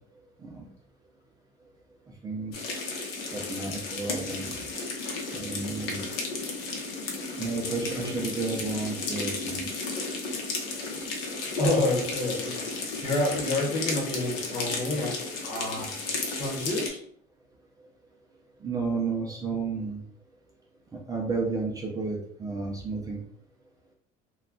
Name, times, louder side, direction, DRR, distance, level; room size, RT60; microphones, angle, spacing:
voice 1, 2.2-2.5 3.3-4.6 5.3-6.1 7.4-9.7 15.6-15.8 18.6-20.0 20.9-23.2, right 4 dB, 20° right, -1 dB, 0.4 m, -32 dB
sound 1, 2.5-16.9, left 3 dB, 90° left, 0.8 m, -33 dB
voice 2, 11.6-15.9 16.3-17.0, left 1 dB, 40° left, -3 dB, 1.1 m, -29 dB
2.3 x 2.2 x 3.6 m, 0.63 s
cardioid pair, 145°, 17 cm